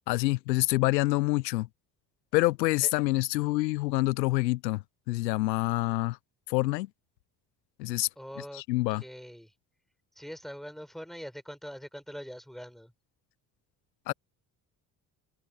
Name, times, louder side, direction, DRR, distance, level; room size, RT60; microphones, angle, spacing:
voice 1, 0.1-1.7 2.3-6.2 6.5-6.9 7.8-8.1 8.5-9.0 14.1-14.2, left 20 dB, 90° left, 0.5 m, -27 dB
voice 2, 8.2-8.6 9.0-9.5 10.2-12.9, equal, ahead, 5.6 m, -43 dB
hypercardioid pair, 50°, 49 cm